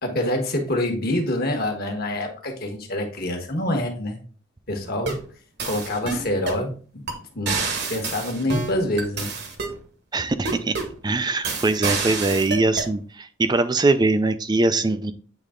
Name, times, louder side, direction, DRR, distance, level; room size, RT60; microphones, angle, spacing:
voice 1, 0.0-4.2 4.7-5.2 5.6-7.0 7.3-7.6 7.9-9.3, left 1 dB, 50° left, 4 dB, 1.3 m, -26 dB
sound 1, 4.8-5.3 5.6-6.6 7.1-7.2 7.5-9.8 10.4-11.0 11.4-12.9, right 4 dB, 55° right, 1.2 m, -28 dB
voice 2, 10.1-10.8 11.0-15.1, right 2 dB, 20° right, 12 dB, 0.4 m, -22 dB
8.3 x 3.3 x 3.6 m, 0.40 s
head